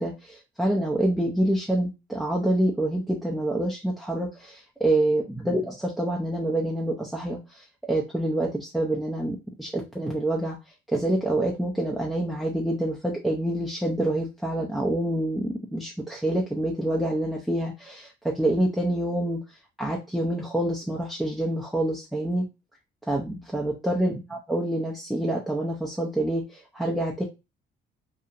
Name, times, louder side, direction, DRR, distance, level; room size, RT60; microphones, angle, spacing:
voice 1, 0.0-10.6 10.9-19.4 19.8-22.4 23.1-27.2, right 1 dB, ahead, -2 dB, 0.5 m, -27 dB
2.8 x 2.1 x 2.5 m, 0.25 s
cardioid pair, 90°, 20 cm